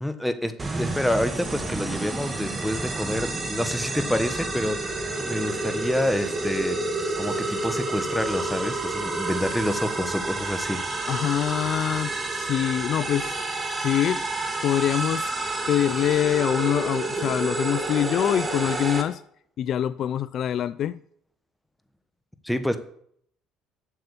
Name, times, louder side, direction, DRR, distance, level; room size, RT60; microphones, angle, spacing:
voice 1, 0.0-0.5 0.8-6.8 7.2-10.8 22.4-22.8, left 1 dB, 5° left, 1.3 m, -28 dB
sound 1, 0.6-19.0, right 2 dB, 25° right, 1.9 m, -29 dB
voice 2, 11.1-13.3 13.8-14.2 14.6-15.3 15.7-19.2 19.6-21.0, left 11 dB, 55° left, 0.3 m, -24 dB
8.1 x 6.7 x 7.1 m
hypercardioid pair, 65°, 0 cm